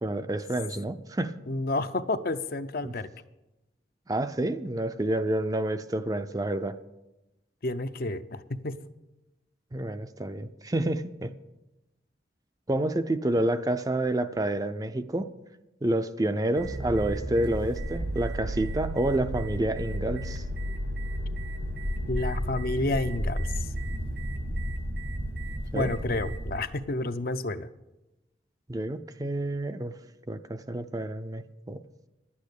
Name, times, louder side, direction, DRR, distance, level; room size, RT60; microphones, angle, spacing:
voice 1, 0.0-1.3 2.8-2.9 4.1-6.8 9.7-11.3 12.7-15.3 15.8-20.4 25.7-25.9 28.7-29.9 30.3-31.8, right 1 dB, 20° right, 10 dB, 0.5 m, -29 dB
voice 2, 1.5-3.1 7.6-8.8 22.1-23.7 25.7-27.7, left 2 dB, 50° left, 11 dB, 0.6 m, -30 dB
sound 1, 16.6-26.6, equal, 75° right, 1.8 m, -33 dB
11.5 x 8.6 x 8.2 m, 0.99 s
head